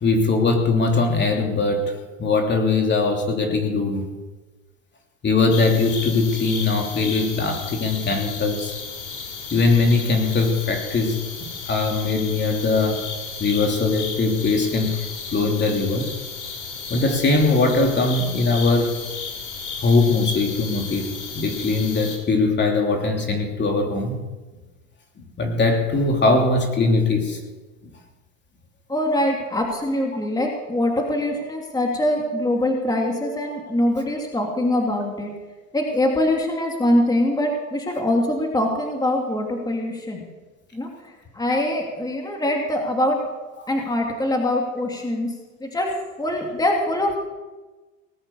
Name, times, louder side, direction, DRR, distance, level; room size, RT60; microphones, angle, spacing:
voice 1, 0.0-4.0 5.2-8.7 9.5-11.2 11.7-13.1 13.4-15.0 15.3-16.1 16.9-19.0 19.8-24.2 25.4-27.4, left 3 dB, 25° left, 2 dB, 3.1 m, -21 dB
sound 1, 5.5-22.2, left 5 dB, 85° left, 4.7 m, -34 dB
voice 2, 28.9-35.3 35.7-40.2 40.7-43.2 43.7-45.3 45.6-45.9 46.2-47.2, left 1 dB, 10° left, 1 dB, 2.8 m, -23 dB
19.5 x 8.8 x 7.0 m, 1.2 s
hypercardioid pair, 100°, 39 cm